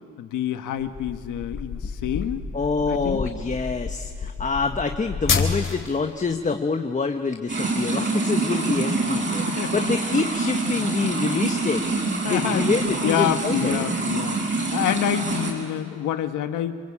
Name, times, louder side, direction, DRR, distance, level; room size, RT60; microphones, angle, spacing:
voice 1, 0.2-2.4 2.9-3.2 9.5-9.8 12.2-12.7 13.0-16.8, left 11 dB, 85° left, 8 dB, 1.5 m, -27 dB
sound 1, 0.8-6.0, left 5 dB, 45° left, 3.8 m, -29 dB
voice 2, 2.5-11.8 12.3-13.8, left 4 dB, 25° left, 5 dB, 1.2 m, -26 dB
sound 2, 7.5-15.5, right 3 dB, 40° right, 7.4 m, -26 dB
28.5 x 23.0 x 8.7 m, 2.1 s
cardioid pair, 90°, 30 cm